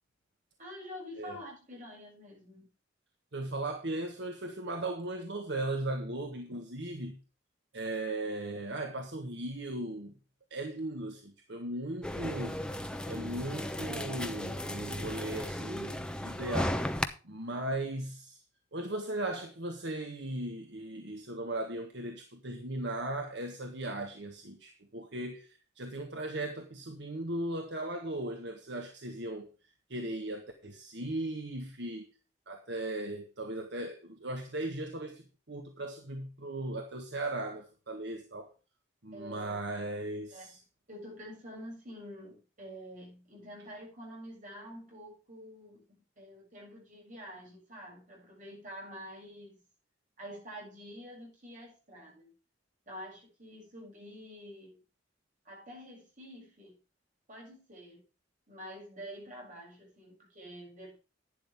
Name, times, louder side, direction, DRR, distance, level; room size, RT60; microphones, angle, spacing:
voice 1, 0.6-2.7 17.5-17.7 39.1-39.6 40.3-40.6 40.9-49.6 50.2-52.3 52.9-54.8 55.4-56.8 57.3-58.0 58.5-61.0, equal, 45° right, 7.5 m, -47 dB
voice 2, 3.3-7.2 7.7-10.1 10.5-12.6 13.0-16.8 17.2-18.4 18.7-29.5 29.9-32.1 32.5-38.5 39.0-40.6, right 1 dB, 65° right, 1.6 m, -37 dB
sound 1, 12.0-17.0, left 1 dB, 5° left, 0.9 m, -35 dB
11.5 x 10.0 x 3.6 m
head